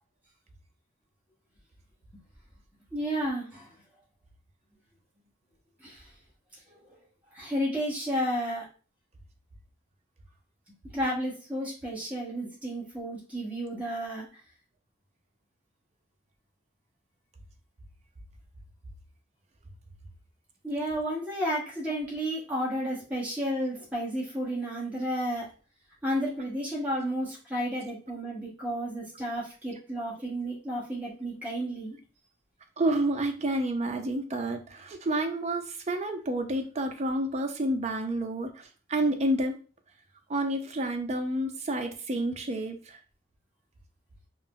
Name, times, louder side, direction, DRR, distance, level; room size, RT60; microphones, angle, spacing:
voice 1, 2.9-3.7 5.8-6.1 6.7-7.0 7.3-8.6 10.9-14.3 20.6-25.4 26.0-32.0, equal, 10° right, -6 dB, 1.0 m, -32 dB
voice 2, 32.8-39.6 40.3-43.0, right 1 dB, 35° right, 5 dB, 0.4 m, -29 dB
2.5 x 2.0 x 3.5 m, 0.36 s
head